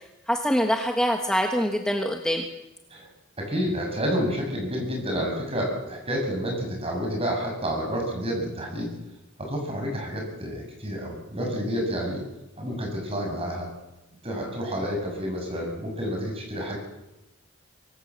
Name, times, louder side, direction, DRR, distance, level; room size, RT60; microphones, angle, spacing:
voice 1, 0.3-2.5, equal, 5° left, 2 dB, 1.4 m, -24 dB
voice 2, 3.4-8.9 9.4-12.2 12.6-13.7 14.2-16.8, equal, 30° right, 1 dB, 7.2 m, -29 dB
24.5 x 18.0 x 7.6 m, 0.97 s
head